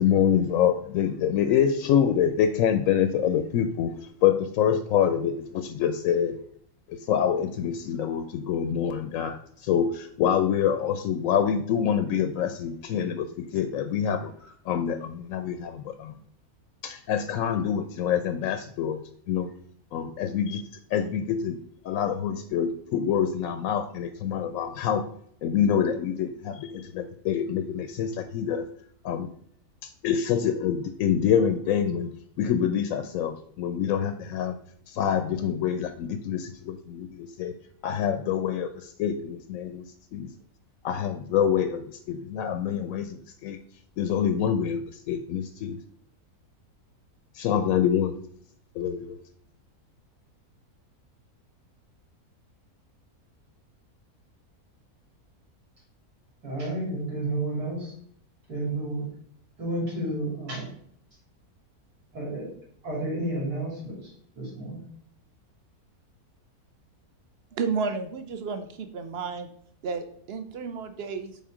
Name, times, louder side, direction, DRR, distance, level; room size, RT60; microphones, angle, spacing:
voice 1, 0.0-6.4 6.9-16.1 16.8-19.5 19.9-20.6 20.9-21.6 21.8-25.1 25.4-28.7 29.0-29.3 29.8-32.1 32.4-34.5 34.9-37.5 37.8-39.8 40.1-40.3 40.8-43.6 44.0-45.8 47.3-48.1 48.8-49.2, left 8 dB, 70° left, 9 dB, 0.9 m, -26 dB
voice 2, 56.4-57.9 58.5-59.1 59.6-60.7 62.1-62.5 62.8-64.1 64.4-64.8, right 1 dB, 90° right, -3 dB, 3.5 m, -31 dB
voice 3, 67.5-69.5 69.8-71.4, right 5 dB, 50° right, 7 dB, 0.9 m, -32 dB
5.6 x 4.5 x 4.9 m, 0.63 s
omnidirectional pair, 1.6 m